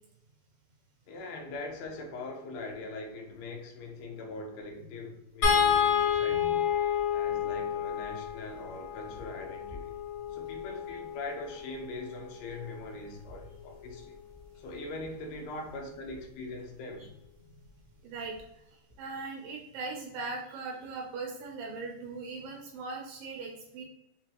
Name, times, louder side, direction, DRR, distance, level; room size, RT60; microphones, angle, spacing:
voice 1, 1.1-6.6 7.1-9.9 10.3-14.2 14.6-17.1, left 2 dB, 90° left, 2.8 m, -41 dB
sound 1, 5.4-11.7 13.3-13.4 13.8-13.9, left 7 dB, 75° left, 1.0 m, -29 dB
voice 2, 18.0-18.4 19.0-23.8, right 3 dB, 75° right, 2.1 m, -39 dB
6.6 x 2.2 x 2.9 m
omnidirectional pair, 4.4 m